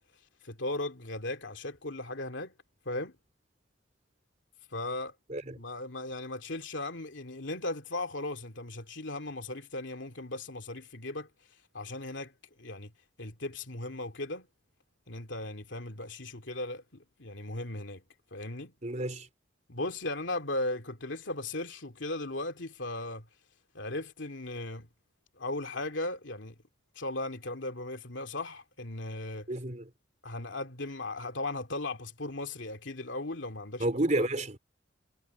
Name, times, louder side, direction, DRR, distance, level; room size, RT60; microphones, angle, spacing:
voice 1, 0.4-2.5 2.8-3.2 4.7-5.1 5.5-11.3 11.7-12.3 12.6-12.9 13.2-14.5 15.1-18.0 18.3-18.7 19.7-23.3 23.7-24.9 25.4-26.5 27.0-29.5 30.2-33.8 34.1-34.3, left 2 dB, 75° left, 2.7 m, -37 dB
voice 2, 5.3-5.6 18.8-19.3 29.5-29.9 33.8-34.6, right 1 dB, 40° right, 3.6 m, -30 dB
head